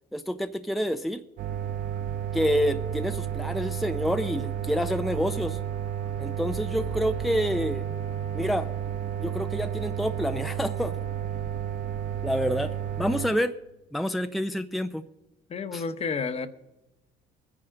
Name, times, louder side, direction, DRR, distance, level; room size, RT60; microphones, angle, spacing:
voice 1, 0.1-1.2 2.3-5.6 6.2-7.8 8.3-8.7 9.2-11.0 12.2-13.5 13.9-15.1 15.7-15.8, equal, ahead, 7 dB, 0.6 m, -28 dB
sound 1, 1.4-13.3, right 9 dB, 50° right, 1.3 m, -32 dB
voice 2, 15.5-16.5, left 5 dB, 40° left, 11 dB, 1.1 m, -30 dB
23.0 x 10.0 x 3.8 m, 0.93 s
cardioid pair, 110°, 17 cm